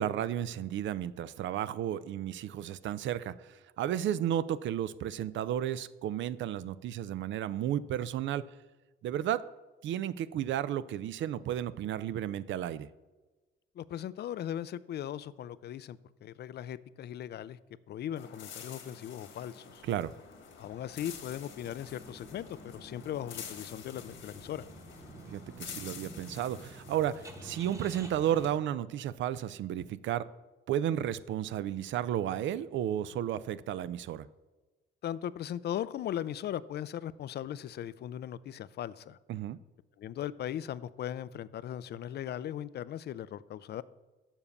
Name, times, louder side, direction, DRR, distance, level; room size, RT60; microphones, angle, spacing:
voice 1, 0.0-8.5 9.0-9.4 9.8-12.9 19.8-20.1 25.3-30.3 30.7-34.3 39.3-39.6, right 11 dB, 70° right, 16 dB, 0.4 m, -33 dB
voice 2, 13.8-17.6 17.9-19.8 20.6-24.6 35.0-39.2 40.0-43.8, left 10 dB, 55° left, 18 dB, 0.4 m, -38 dB
sound 1, 18.2-28.5, left 7 dB, 75° left, 1.5 m, -49 dB
sound 2, 19.6-28.5, right 2 dB, 15° right, 1.1 m, -51 dB
7.2 x 5.3 x 7.0 m, 1.2 s
cardioid pair, 90°, 20 cm